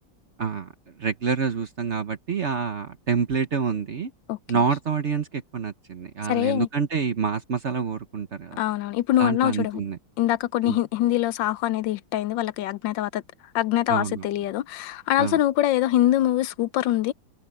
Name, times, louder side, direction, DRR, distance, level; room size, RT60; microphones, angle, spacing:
voice 1, 0.4-0.7 1.0-4.1 4.5-8.6 9.2-10.0 10.6-10.8 13.9-14.2 15.2-15.4, right 6 dB, 45° right, 1.0 m, -27 dB
voice 2, 6.3-6.7 8.6-9.8 10.2-13.2 13.5-17.1, left 13 dB, 75° left, 1.3 m, -24 dB
omnidirectional pair, 2.1 m